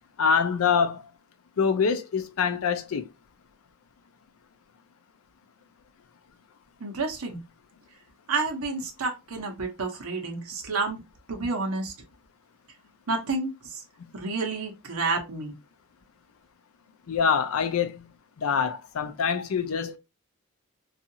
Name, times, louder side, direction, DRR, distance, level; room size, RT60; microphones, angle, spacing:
voice 1, 0.2-1.0 1.6-3.1 17.1-18.0 18.4-20.0, left 6 dB, 75° left, 0.4 m, -25 dB
voice 2, 6.8-7.4 8.3-11.0 11.3-11.9 13.1-13.5 14.1-15.5, right 3 dB, 80° right, 0.7 m, -29 dB
2.6 x 2.4 x 2.6 m
head